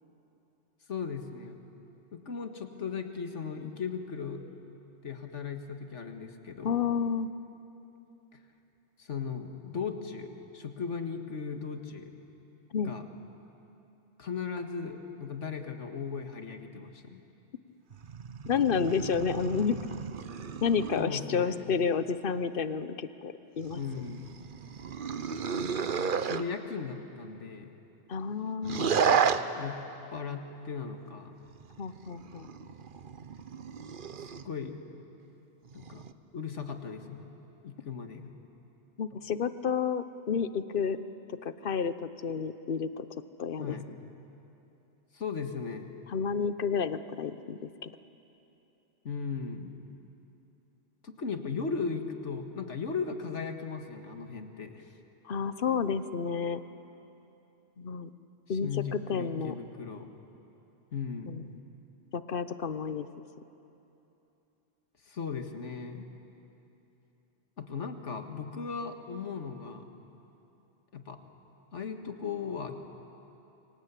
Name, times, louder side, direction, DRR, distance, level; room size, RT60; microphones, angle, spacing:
voice 1, 0.9-1.6 2.1-4.4 5.0-6.8 9.0-12.1 12.8-13.1 14.2-17.2 21.0-21.7 23.7-24.3 26.2-27.7 28.8-29.8 30.1-31.4 34.4-34.8 35.7-36.0 36.3-37.3 37.6-38.3 43.6-43.9 45.1-45.9 49.0-49.7 51.0-54.8 58.5-60.1 60.9-61.3 65.1-66.1 67.6-69.9 70.9-71.2 71.7-72.7, left 5 dB, 90° left, 6 dB, 2.0 m, -37 dB
voice 2, 6.6-7.3 12.7-12.9 18.4-19.8 20.6-24.1 28.1-29.0 31.8-32.5 39.0-41.0 41.4-43.1 43.4-43.8 46.1-47.9 55.2-56.6 57.8-58.1 58.5-59.5 61.3-61.6 62.1-63.1, left 6 dB, 50° left, 12 dB, 1.0 m, -30 dB
sound 1, 17.9-21.1 23.6-26.4 28.6-29.4 31.5-34.5 35.7-36.1, right 6 dB, 50° right, 1.0 m, -32 dB
28.5 x 25.0 x 8.4 m, 2.9 s
omnidirectional pair, 1.2 m